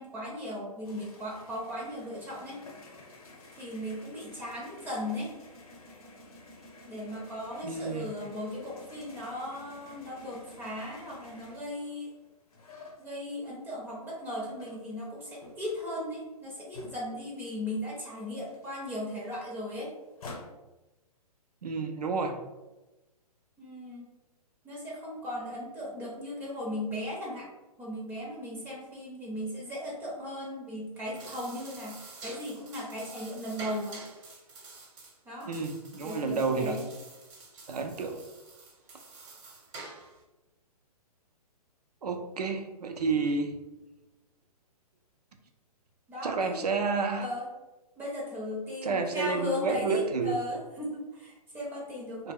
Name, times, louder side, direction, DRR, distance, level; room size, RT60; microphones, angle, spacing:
voice 1, 0.0-2.6 3.5-5.3 6.8-12.1 13.0-19.9 23.6-24.1 24.6-27.5 27.8-34.0 35.3-35.5 36.0-36.9 46.1-46.6 47.2-47.5 48.0-52.3, left 1 dB, 10° right, -4 dB, 0.5 m, -37 dB
sound 1, 0.8-13.7 14.1-17.5 17.8-17.9 18.1-20.5, left 2 dB, 65° left, 0.7 m, -51 dB
voice 2, 7.6-8.1 21.6-22.4 35.4-36.8 37.7-38.2 42.0-43.5 46.2-47.3 48.8-50.4 52.2-52.3, right 4 dB, 80° right, 5 dB, 0.5 m, -30 dB
sound 2, 30.9-40.2, right 3 dB, 50° right, 0.8 m, -48 dB
2.2 x 2.0 x 3.5 m, 1.1 s
figure-of-eight pair, 125°, 20 cm